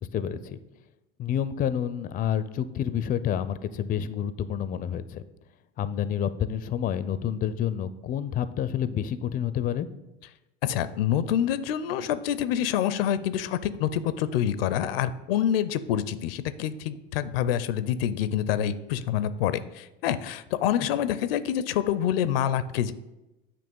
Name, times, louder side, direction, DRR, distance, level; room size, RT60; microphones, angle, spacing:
voice 1, 0.0-0.6 1.2-5.2 5.8-9.9 20.8-20.9, left 9 dB, 30° left, 14 dB, 0.4 m, -29 dB
voice 2, 10.6-22.9, left 10 dB, 80° left, 14 dB, 0.5 m, -27 dB
8.5 x 2.9 x 5.3 m, 0.99 s
hypercardioid pair, 95°, 29 cm